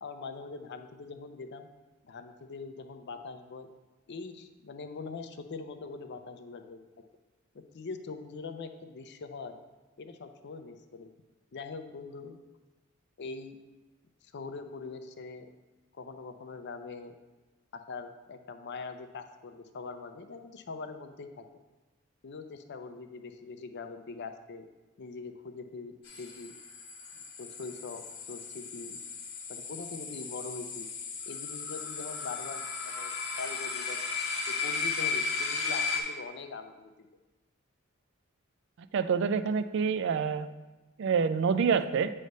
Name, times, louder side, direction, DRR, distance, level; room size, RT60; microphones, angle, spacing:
voice 1, 0.0-1.7 2.0-3.7 4.1-6.8 7.7-9.6 10.0-11.1 11.5-12.4 13.2-13.6 14.2-15.5 16.0-17.2 17.7-21.4 22.2-24.7 25.0-26.5 27.1-29.0 29.5-30.9 31.3-34.0 34.5-36.9, left 4 dB, 55° left, 7 dB, 0.5 m, -42 dB
sound 1, 26.1-36.0, left 5 dB, 85° left, 1.3 m, -35 dB
voice 2, 38.9-40.5 41.0-42.1, right 6 dB, 60° right, 11 dB, 0.3 m, -27 dB
7.8 x 3.3 x 5.3 m, 1.2 s
head